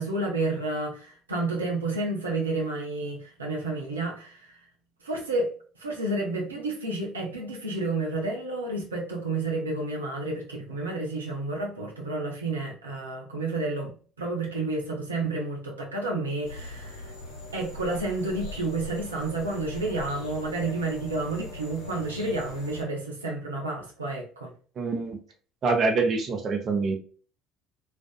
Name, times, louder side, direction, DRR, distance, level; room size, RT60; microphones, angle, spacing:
voice 1, 0.0-4.6 5.0-5.5 5.8-17.1 17.5-24.5, right 2 dB, 85° right, 0.6 m, -30 dB
sound 1, 16.4-22.8, left 1 dB, 80° left, 0.9 m, -41 dB
voice 2, 24.8-25.2 25.6-27.0, right 4 dB, 45° right, 0.6 m, -25 dB
2.4 x 2.4 x 2.3 m
figure-of-eight pair, 60°, 0 cm